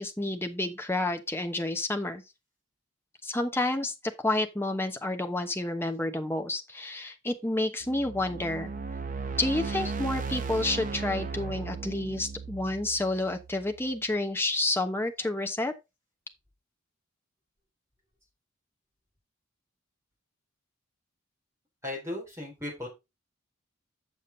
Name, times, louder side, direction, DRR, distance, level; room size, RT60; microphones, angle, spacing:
voice 1, 0.0-2.2 3.2-8.7 9.4-15.7, left 2 dB, 10° left, 0.9 m, -30 dB
sound 1, 7.8-14.0, right 4 dB, 40° right, 0.8 m, -36 dB
voice 2, 21.8-22.9, left 1 dB, 15° right, 3.6 m, -36 dB
7.2 x 6.9 x 3.9 m
head